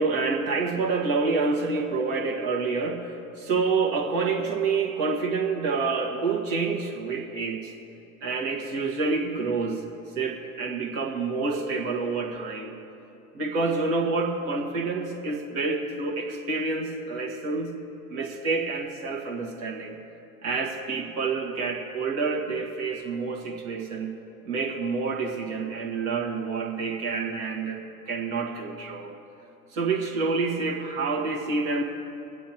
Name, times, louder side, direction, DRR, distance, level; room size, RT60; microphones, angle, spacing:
voice 1, 0.0-7.8 8.2-9.9 10.2-12.8 13.3-17.7 18.1-20.0 20.4-24.2 24.5-29.2 29.7-31.8, right 4 dB, 50° right, 2 dB, 1.8 m, -28 dB
22.0 x 9.1 x 2.9 m, 3.0 s
figure-of-eight pair, 85°, 42 cm